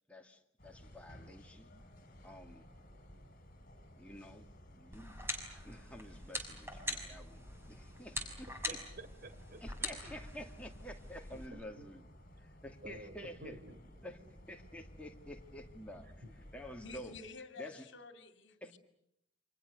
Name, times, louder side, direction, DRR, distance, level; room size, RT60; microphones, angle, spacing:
voice 1, 0.1-1.8 2.2-2.6 4.0-4.5 4.8-5.2 5.6-8.8 9.6-12.1 12.4-13.6 14.0-14.2 14.5-16.1 16.5-17.2 17.6-17.8 18.6-18.7, equal, 5° left, 2 dB, 2.5 m, -50 dB
sound 1, 0.6-17.2, equal, 45° left, 5.5 m, -56 dB
sound 2, 4.9-11.5, left 1 dB, 15° right, 5.8 m, -43 dB
voice 2, 8.5-9.6 11.3-11.9 12.8-14.1 16.2-16.3, right 1 dB, 50° right, 8 dB, 3.6 m, -52 dB
voice 3, 16.8-18.8, left 4 dB, 65° left, 8 dB, 2.5 m, -50 dB
29.5 x 26.0 x 6.8 m, 0.77 s
head